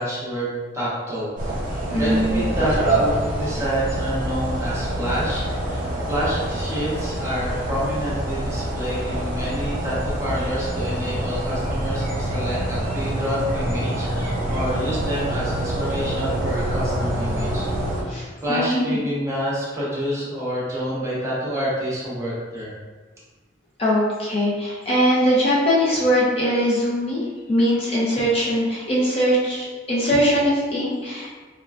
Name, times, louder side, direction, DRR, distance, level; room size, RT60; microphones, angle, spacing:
voice 1, 0.0-1.3 1.7-17.6 18.4-22.7, equal, 15° right, -8 dB, 0.9 m, -28 dB
sound 1, 1.4-18.0, right 1 dB, 45° right, 0.9 m, -26 dB
voice 2, 1.9-2.4 18.1-19.0 23.8-27.2 27.5-31.3, equal, 30° left, -7 dB, 0.7 m, -21 dB
4.4 x 2.3 x 2.4 m, 1.3 s
head